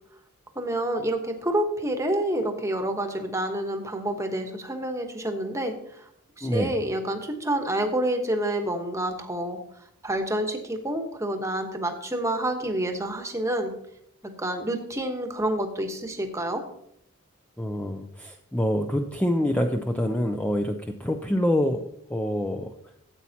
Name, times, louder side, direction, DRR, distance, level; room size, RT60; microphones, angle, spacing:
voice 1, 0.5-6.1 6.4-9.6 10.0-13.7 14.2-16.6, right 1 dB, 15° right, 5 dB, 1.0 m, -28 dB
voice 2, 17.6-21.8 22.1-22.7, left 1 dB, 5° left, 4 dB, 0.4 m, -26 dB
13.5 x 8.4 x 2.8 m, 0.73 s
head